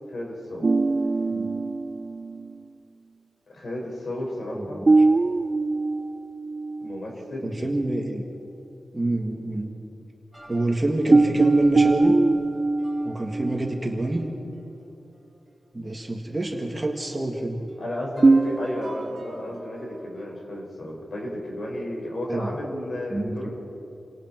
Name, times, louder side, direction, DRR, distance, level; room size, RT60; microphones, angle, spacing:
voice 1, 0.1-0.7 3.5-4.8 6.8-7.6 17.8-23.5, left 1 dB, 50° left, -2 dB, 6.0 m, -33 dB
sound 1, 0.6-2.6 4.9-7.0 7.4-7.5 11.1-14.3 18.2-19.0, right 3 dB, 35° right, 0.6 m, -22 dB
voice 2, 1.3-1.6 4.6-5.0 7.4-8.2 8.9-9.8 10.5-12.2 13.0-14.2 15.7-17.7 22.3-22.5 23.1-23.5, right 1 dB, 20° right, 0 dB, 2.0 m, -27 dB
sound 2, 10.3-15.5 15.9-16.0 16.5-20.3, right 1 dB, 10° left, 4.7 m, -45 dB
29.5 x 25.0 x 4.6 m, 2.9 s
wide cardioid pair, 145°, 0 cm